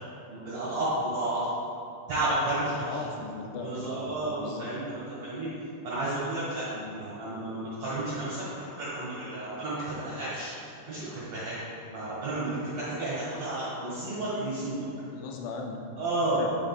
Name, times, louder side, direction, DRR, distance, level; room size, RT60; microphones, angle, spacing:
voice 1, 0.3-1.5 2.1-2.9 3.6-5.5 5.8-6.7 6.9-10.5 10.9-11.6 11.9-14.8 16.0-16.5, right 2 dB, 50° right, -11 dB, 2.2 m, -32 dB
voice 2, 2.6-4.1 4.4-4.7 6.7-6.9 15.1-15.8 16.4-16.5, left 4 dB, 90° left, 1 dB, 3.1 m, -38 dB
9.0 x 6.4 x 2.4 m, 2.6 s
omnidirectional pair, 5.1 m